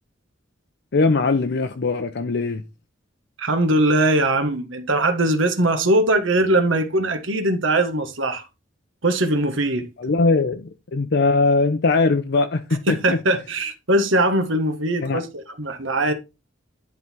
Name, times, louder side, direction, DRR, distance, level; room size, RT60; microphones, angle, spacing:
voice 1, 0.9-2.6 10.0-13.2 15.0-15.2, left 3 dB, 55° left, 0.6 m, -20 dB
voice 2, 3.4-8.4 9.0-9.8 12.9-16.1, right 1 dB, 70° right, 1.6 m, -21 dB
11.0 x 3.9 x 4.5 m
head